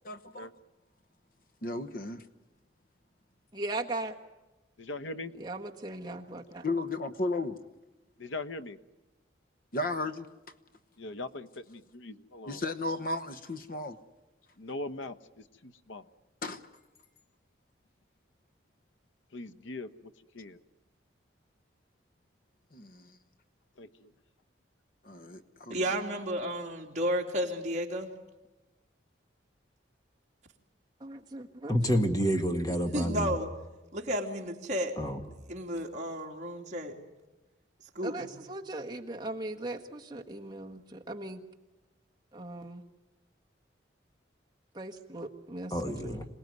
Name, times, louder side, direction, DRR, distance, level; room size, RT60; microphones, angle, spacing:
voice 1, 0.0-0.5 1.6-2.2 6.6-7.6 9.7-10.3 12.5-14.0 16.4-16.6 22.7-23.2 25.0-25.8, left 2 dB, 50° left, 1.0 m, -34 dB
voice 2, 3.5-4.1 5.4-6.6 31.0-31.8 38.0-41.4 42.3-42.8 44.7-46.2, right 2 dB, 20° right, 1.6 m, -39 dB
voice 3, 4.8-5.3 8.2-8.8 11.0-12.6 14.6-16.0 19.3-19.9 20.3-20.6 23.8-23.9, left 2 dB, 90° left, 1.0 m, -40 dB
voice 4, 25.7-28.1 32.9-33.5 33.9-34.9 35.5-36.9 37.9-38.3, equal, 40° right, 2.8 m, -32 dB
voice 5, 31.7-33.3 35.0-35.2 45.7-46.3, equal, 20° left, 1.7 m, -28 dB
26.5 x 19.0 x 9.4 m
head